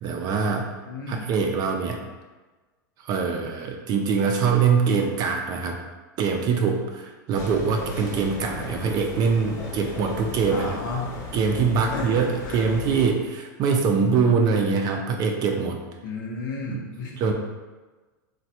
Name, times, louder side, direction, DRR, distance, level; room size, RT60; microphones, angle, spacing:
voice 1, 0.0-0.7 1.1-2.0 3.0-5.8 6.2-10.8 11.3-15.8 16.7-16.9 17.2-17.3, right 5 dB, 40° right, 2 dB, 0.3 m, -23 dB
voice 2, 0.5-1.3 10.5-11.2 11.9-12.7 16.0-17.2, left 3 dB, 80° left, 0 dB, 0.7 m, -33 dB
sound 1, 7.4-13.1, left 3 dB, 30° left, 0.8 m, -36 dB
3.1 x 2.1 x 2.8 m, 1.2 s
hypercardioid pair, 115°, 10 cm